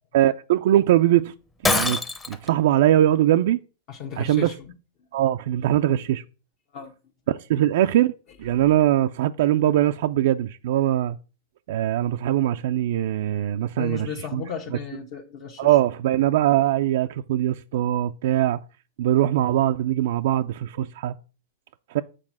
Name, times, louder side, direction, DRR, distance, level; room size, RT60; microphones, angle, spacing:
voice 1, 0.1-1.3 1.6-2.0 2.3-3.6 4.2-4.5 5.1-6.2 7.3-8.1 8.4-11.2 11.7-14.4 15.6-18.6 19.0-21.1 21.9-22.0, right 12 dB, 65° right, 0.4 m, -21 dB
Shatter, 1.6-2.5, left 3 dB, 15° left, 0.9 m, -23 dB
voice 2, 3.9-4.7 6.7-6.9 13.8-15.8, left 7 dB, 45° left, 1.1 m, -35 dB
7.5 x 4.2 x 6.0 m
hypercardioid pair, 135°, 0 cm